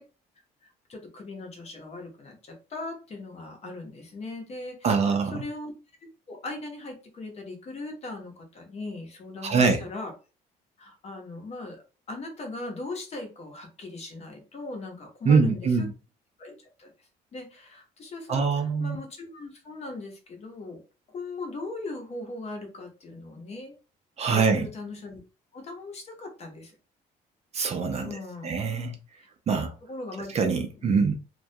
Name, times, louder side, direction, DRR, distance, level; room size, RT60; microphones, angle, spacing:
voice 1, 0.9-5.7 6.3-10.1 10.8-15.9 16.4-20.8 21.1-23.7 24.3-25.2 25.5-26.8 28.0-28.5 29.2-29.3 29.9-30.4 30.8-30.9, left 2 dB, 40° left, 0.8 m, -39 dB
voice 2, 4.8-5.4 9.4-9.8 15.3-15.9 18.3-19.0 24.2-24.7 27.5-28.2 28.4-28.9 29.5-29.7 30.3-31.1, right 5 dB, 40° right, 0.5 m, -23 dB
2.3 x 2.1 x 2.6 m
cardioid pair, 110°, 17 cm